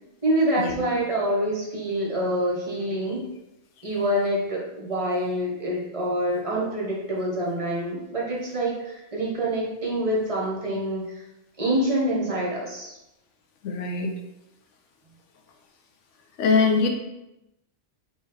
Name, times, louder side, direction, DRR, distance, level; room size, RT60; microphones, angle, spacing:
voice 1, 0.2-3.2 3.8-11.0 11.6-12.9, right 1 dB, 35° right, -4 dB, 0.7 m, -26 dB
voice 2, 13.6-14.1 16.4-16.9, left 4 dB, 85° left, 3 dB, 1.0 m, -22 dB
3.6 x 3.0 x 2.8 m, 0.91 s
omnidirectional pair, 1.2 m